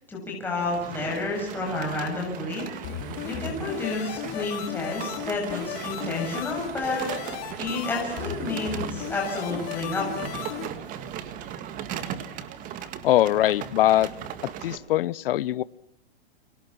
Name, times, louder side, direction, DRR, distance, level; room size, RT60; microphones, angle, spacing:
voice 1, 0.1-2.6 3.2-7.1 7.6-10.3, left 2 dB, 5° left, -2 dB, 7.4 m, -30 dB
sound 1, 0.6-14.8, right 9 dB, 25° right, 1.9 m, -38 dB
sound 2, 2.8-10.7, left 10 dB, 35° left, 3.2 m, -36 dB
voice 2, 13.0-14.1 14.4-15.6, left 14 dB, 55° left, 20 dB, 1.0 m, -22 dB
30.0 x 25.5 x 6.0 m, 0.73 s
hypercardioid pair, 160°, 33 cm